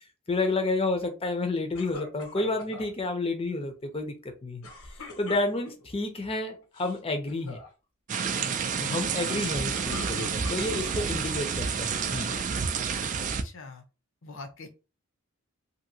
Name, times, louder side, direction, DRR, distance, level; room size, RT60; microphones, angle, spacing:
voice 1, 0.3-4.6 5.2-7.6 8.8-12.3, left 2 dB, 25° left, 0.6 m, -30 dB
sound 1, 1.8-2.9 4.6-5.9 6.6-7.0 7.3-7.7 9.5-11.0 11.6-12.4, left 2 dB, 85° left, 0.9 m, -43 dB
sound 2, 8.1-13.4, right 6 dB, 35° right, 0.3 m, -29 dB
voice 2, 13.2-13.8 14.2-14.7, left 3 dB, 65° left, 0.7 m, -43 dB
2.9 x 2.7 x 2.7 m
head